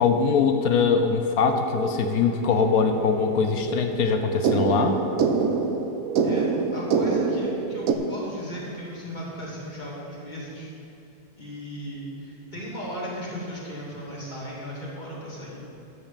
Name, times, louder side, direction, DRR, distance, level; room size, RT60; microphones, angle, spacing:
voice 1, 0.0-5.0, left 5 dB, 65° left, 6 dB, 1.1 m, -22 dB
sound 1, 1.5-7.9, right 5 dB, 60° right, 1.0 m, -26 dB
Bowed string instrument, 2.1-7.2, right 2 dB, 90° right, 2.8 m, -42 dB
voice 2, 6.2-10.7 11.4-15.6, equal, 25° left, -6 dB, 2.5 m, -36 dB
12.5 x 5.1 x 7.4 m, 2.7 s
omnidirectional pair, 1.8 m